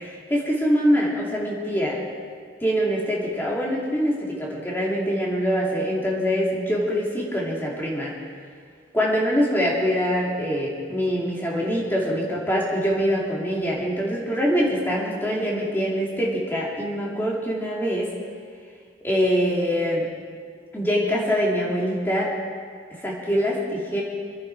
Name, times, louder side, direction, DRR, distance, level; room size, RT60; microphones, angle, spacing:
voice 1, 0.0-2.0 2.6-8.1 8.9-18.1 19.0-20.1 20.7-22.3 22.9-24.0, equal, 10° left, -4 dB, 2.9 m, -24 dB
26.0 x 10.5 x 4.9 m, 2.1 s
head